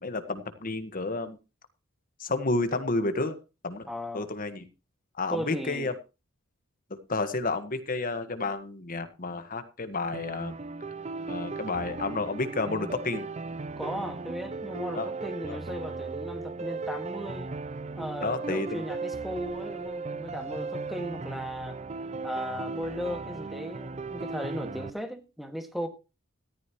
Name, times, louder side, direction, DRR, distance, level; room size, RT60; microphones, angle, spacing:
voice 1, 0.0-1.4 2.2-3.4 3.6-3.9 4.1-4.6 5.2-5.9 6.9-10.6 11.3-13.3 14.9-15.1 15.5-15.6 18.2-18.9, left 3 dB, 45° left, 1.5 m, -31 dB
voice 2, 3.9-4.3 5.3-5.9 13.8-17.5 18.0-21.8 22.2-25.9, equal, ahead, 1.9 m, -36 dB
sound 1, 10.1-24.9, right 4 dB, 35° right, 0.5 m, -36 dB
14.5 x 13.5 x 3.1 m
head